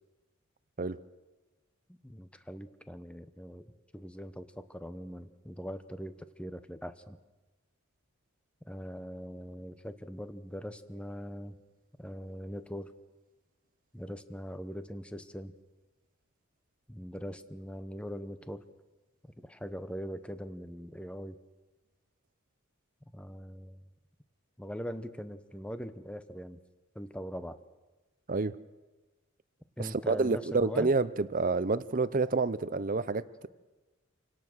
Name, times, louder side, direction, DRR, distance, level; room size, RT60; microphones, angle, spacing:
voice 1, 1.9-7.2 8.7-11.6 12.0-12.9 13.9-15.5 16.9-18.6 19.2-21.4 23.1-23.8 24.6-26.6 26.9-27.6 29.8-30.9, equal, 5° left, 0.9 m, -41 dB
voice 2, 29.8-33.5, right 3 dB, 40° right, 0.7 m, -28 dB
27.0 x 18.0 x 6.3 m
head